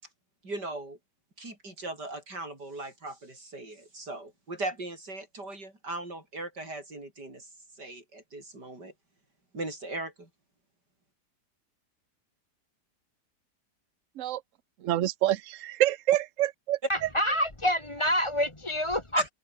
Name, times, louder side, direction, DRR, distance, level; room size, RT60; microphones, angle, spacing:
voice 1, 0.4-1.0 1.4-8.9 9.5-10.3 19.2-19.3, right 2 dB, 85° right, 8.2 m, -38 dB
voice 2, 14.8-16.8, right 13 dB, 55° right, 1.0 m, -26 dB
voice 3, 16.9-19.2, equal, 15° left, 2.2 m, -27 dB
omnidirectional pair, 1.8 m